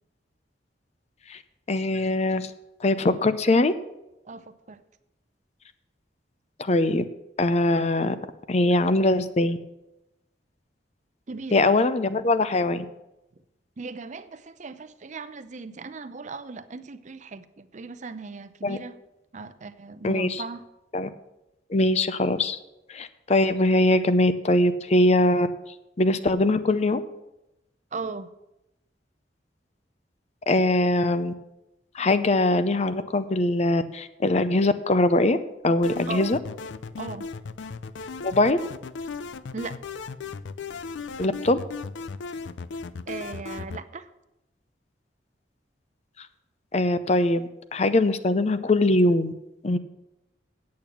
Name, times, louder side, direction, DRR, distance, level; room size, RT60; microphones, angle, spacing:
voice 1, 1.7-2.5 2.8-3.7 6.6-7.0 7.4-8.2 8.5-9.6 11.5-12.9 18.6-18.8 20.0-20.4 20.9-21.1 21.7-22.6 22.9-25.5 26.0-27.0 30.5-31.3 31.9-35.4 35.6-36.4 38.2-38.6 41.2-41.6 46.7-49.3 49.6-49.8, left 2 dB, 35° left, 12 dB, 0.6 m, -22 dB
voice 2, 4.2-4.8 11.3-11.7 13.8-19.0 19.3-20.6 27.9-28.3 36.1-36.3 37.0-37.3 39.5-39.8 43.1-44.1, right 4 dB, 40° right, 12 dB, 0.6 m, -37 dB
sound 1, 35.8-43.8, left 4 dB, 85° left, 0.4 m, -36 dB
8.8 x 8.6 x 5.9 m, 0.92 s
head